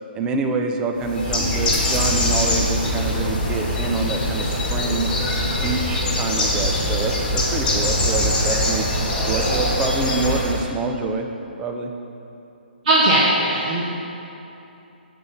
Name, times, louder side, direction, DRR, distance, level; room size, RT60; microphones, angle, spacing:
voice 1, 0.1-5.1 5.5-8.9 9.2-11.3 11.6-11.9, right 3 dB, 15° right, 4 dB, 0.5 m, -26 dB
Bird, 1.0-10.7, left 1 dB, 10° left, 1.3 m, -22 dB
voice 2, 12.8-13.8, right 1 dB, 45° right, -5 dB, 1.2 m, -18 dB
6.4 x 6.2 x 5.5 m, 2.8 s
hypercardioid pair, 145°, 6 cm